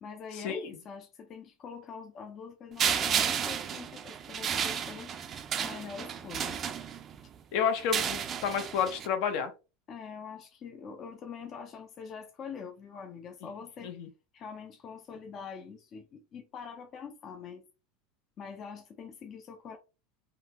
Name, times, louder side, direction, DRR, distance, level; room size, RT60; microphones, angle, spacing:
voice 1, 0.0-5.1 5.6-6.6 9.9-13.9 14.3-17.6 18.4-19.8, left 6 dB, 35° left, 0.5 m, -44 dB
sound 1, 2.8-7.2 7.8-9.1, right 8 dB, 30° right, 0.4 m, -32 dB
voice 2, 7.5-9.5 13.8-14.1, left 7 dB, 60° left, 0.8 m, -30 dB
3.7 x 2.2 x 2.9 m
supercardioid pair, 125°, 0 cm